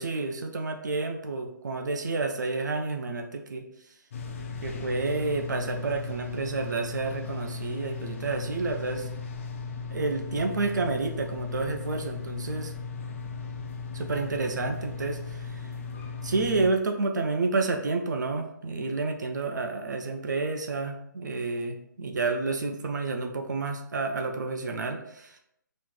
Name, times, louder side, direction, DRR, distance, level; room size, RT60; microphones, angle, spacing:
voice 1, 0.0-3.6 4.6-9.1 9.9-12.7 13.9-15.6 16.2-25.4, right 3 dB, 60° right, 4 dB, 0.6 m, -30 dB
sound 1, 4.1-16.7, left 4 dB, 40° left, 0.5 m, -37 dB
5.8 x 3.1 x 2.3 m, 0.76 s
figure-of-eight pair, 140°, 11 cm